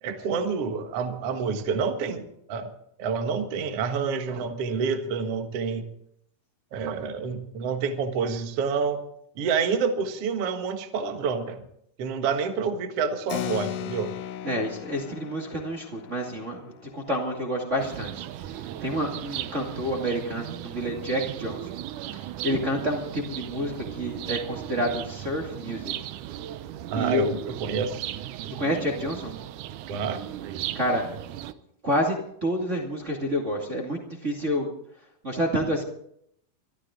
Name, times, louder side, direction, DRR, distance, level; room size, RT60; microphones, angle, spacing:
voice 1, 0.0-2.7 3.0-5.9 6.7-9.0 9.4-11.6 12.0-14.1 26.9-28.0 29.9-30.3, right 5 dB, 50° right, 6 dB, 2.0 m, -28 dB
Keyboard (musical), 13.3-19.3, left 11 dB, 75° left, 2.0 m, -38 dB
voice 2, 14.4-18.2 18.8-21.8 22.4-25.9 26.9-27.3 28.5-29.3 30.7-31.1 31.8-34.7 35.2-35.8, equal, 25° right, -2 dB, 1.9 m, -28 dB
sound 1, 17.8-31.5, right 12 dB, 80° right, 1.8 m, -37 dB
24.0 x 13.5 x 3.8 m, 0.71 s
omnidirectional pair, 4.5 m